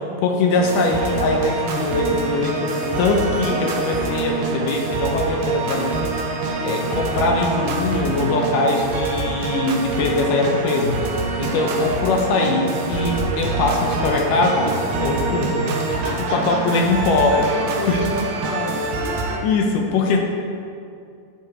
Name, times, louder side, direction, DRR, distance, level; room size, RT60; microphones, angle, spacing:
voice 1, 0.2-6.1 6.6-11.0 11.4-15.7 16.2-17.6 17.9-18.0 19.4-20.2, left 3 dB, 75° left, 2 dB, 2.3 m, -21 dB
sound 1, 0.5-19.4, right 3 dB, 70° right, 2.6 m, -25 dB
voice 2, 15.6-19.6, equal, 30° right, -7 dB, 1.5 m, -31 dB
13.0 x 11.5 x 3.0 m, 2.4 s
omnidirectional pair, 4.2 m